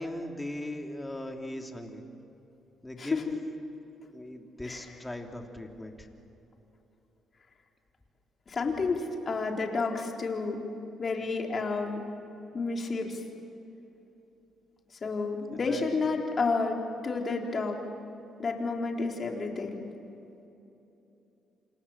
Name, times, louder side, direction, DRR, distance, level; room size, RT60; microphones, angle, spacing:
voice 1, 0.0-2.0 2.8-3.2 4.1-6.1 15.5-15.9, left 1 dB, 10° left, 3 dB, 3.1 m, -39 dB
voice 2, 3.0-3.4 4.6-4.9 8.5-10.6 11.0-12.1 12.5-13.2 15.0-17.8 18.4-19.9, left 4 dB, 40° left, 1 dB, 4.1 m, -30 dB
28.0 x 28.0 x 7.4 m, 3.0 s
cardioid pair, 90°, 0 cm